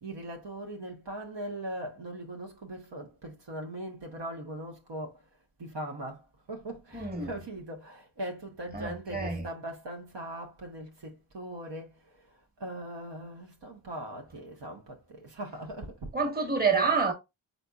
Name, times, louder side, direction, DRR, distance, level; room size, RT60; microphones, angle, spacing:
voice 1, 0.0-5.2 5.6-12.3 12.6-16.1, right 1 dB, 60° right, 1.0 m, -40 dB
voice 2, 6.9-7.3 8.7-9.4 16.1-17.1, right 4 dB, 20° right, 1.3 m, -27 dB
4.2 x 4.0 x 2.3 m
cardioid pair, 50°, 47 cm